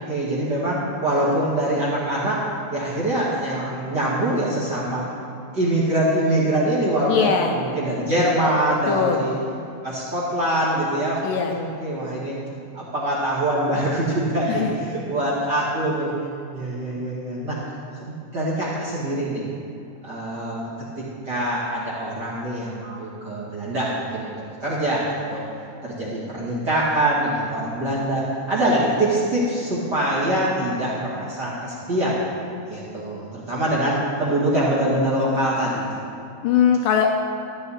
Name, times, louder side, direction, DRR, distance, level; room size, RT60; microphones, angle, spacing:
voice 1, 0.1-5.1 5.5-9.4 9.8-12.4 12.7-16.1 16.5-17.6 17.9-19.5 20.0-20.6 21.0-24.3 24.6-25.4 25.8-32.2 32.7-35.9, right 1 dB, 35° right, -8 dB, 1.9 m, -24 dB
voice 2, 7.1-7.6 8.9-9.2 11.2-11.5 14.5-14.7 36.4-37.1, left 7 dB, 80° left, 2 dB, 2.1 m, -20 dB
14.0 x 9.9 x 4.2 m, 2.6 s
omnidirectional pair, 4.3 m